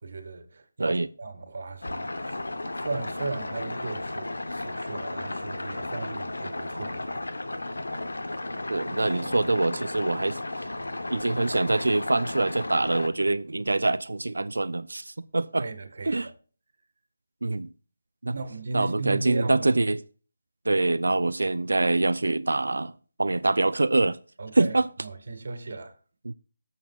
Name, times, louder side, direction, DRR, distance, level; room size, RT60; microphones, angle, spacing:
voice 1, 0.0-2.5 2.8-7.2 15.6-16.3 18.3-19.7 24.4-25.9, right 3 dB, 60° right, 1.6 m, -36 dB
sound 1, 1.8-13.1, left 2 dB, 85° left, 1.0 m, -34 dB
voice 2, 8.7-10.4 11.1-15.6 16.1-16.3 17.4-17.7 18.2-18.3 18.7-20.0 20.7-22.9 23.2-24.2 24.5-24.9 26.3-26.4, right 2 dB, 80° right, 0.4 m, -25 dB
Acoustic guitar, 9.0-12.6, right 3 dB, 20° right, 2.2 m, -50 dB
18.0 x 6.8 x 2.4 m
figure-of-eight pair, 160°, 0 cm